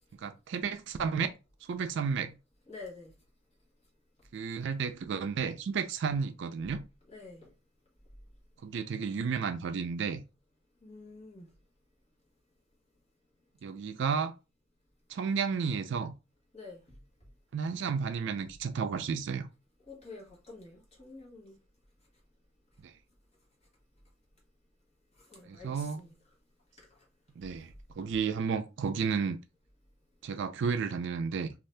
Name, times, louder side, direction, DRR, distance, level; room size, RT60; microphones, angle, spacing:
voice 1, 0.2-1.3 1.7-2.4 4.3-6.8 8.6-10.2 13.6-14.4 15.1-16.1 17.5-19.5 22.8-22.9 25.5-26.0 27.4-29.4 30.2-31.5, right 6 dB, 65° right, 0.4 m, -32 dB
voice 2, 2.7-3.1 7.1-7.5 10.8-11.5 16.5-17.0 19.9-21.6 25.3-26.1 26.8-26.9, left 3 dB, 35° left, 1.2 m, -48 dB
2.6 x 2.4 x 3.2 m
head